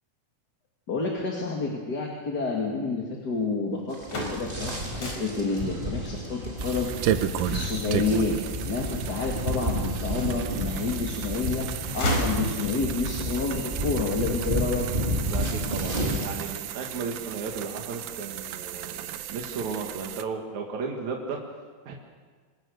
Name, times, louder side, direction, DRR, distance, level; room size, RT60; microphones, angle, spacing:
voice 1, 0.9-8.4 8.6-14.9, left 4 dB, 35° left, -1 dB, 2.5 m, -29 dB
sound 1, 3.8-9.8 10.3-11.1 11.4-13.0, left 1 dB, 60° left, 6.1 m, -34 dB
sound 2, 3.9-16.3, equal, 15° right, 3.2 m, -31 dB
sound 3, 6.6-20.2, right 11 dB, 85° right, 2.4 m, -34 dB
voice 2, 15.3-21.4 21.9-22.0, right 5 dB, 65° right, 0 dB, 3.1 m, -34 dB
25.5 x 23.0 x 6.6 m, 1.5 s
omnidirectional pair, 3.7 m